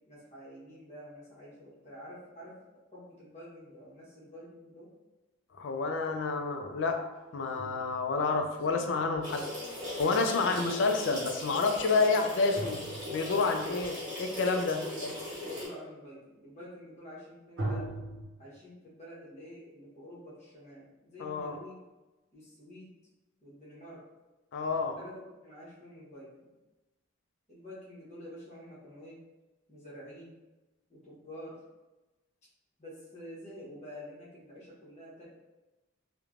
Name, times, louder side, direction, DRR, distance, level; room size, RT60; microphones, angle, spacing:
voice 1, 0.1-2.6 2.9-4.9 10.2-10.5 14.7-15.1 15.4-17.9 18.4-21.8 22.3-22.9 23.4-24.0 25.0-26.5 27.5-29.2 29.7-30.4 30.9-31.6 32.8-35.3, equal, 35° left, -7 dB, 0.9 m, -48 dB
voice 2, 5.5-7.0 7.3-9.4 10.0-12.8 13.1-15.1 21.2-21.6 24.5-25.0, left 4 dB, 65° left, 4 dB, 0.3 m, -29 dB
sound 1, 7.2-10.8 12.5-13.7 17.6-18.2, right 1 dB, 75° right, 0.7 m, -40 dB
sound 2, 9.2-15.7, left 1 dB, 20° right, 1.0 m, -39 dB
3.1 x 2.1 x 2.4 m, 1.1 s
head